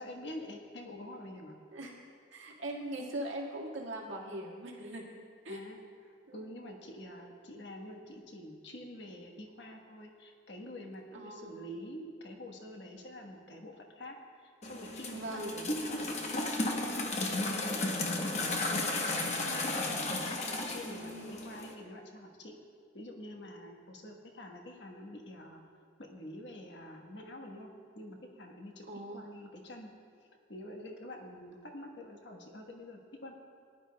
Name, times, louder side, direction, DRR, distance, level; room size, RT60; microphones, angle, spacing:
voice 1, 0.0-1.6 5.5-18.3 18.6-18.8 19.2-20.2 20.5-22.6 22.9-25.6 26.0-28.9 29.1-29.9 30.5-33.4, left 1 dB, 65° left, 2 dB, 1.3 m, -47 dB
voice 2, 2.3-5.6 6.3-6.4 11.1-11.6 15.1-15.5 20.9-21.4 28.9-29.3, right 1 dB, 85° right, -3 dB, 1.9 m, -41 dB
sound 1, 14.6-21.7, left 2 dB, 35° left, 0.9 m, -34 dB
19.0 x 11.0 x 2.3 m, 2.2 s
head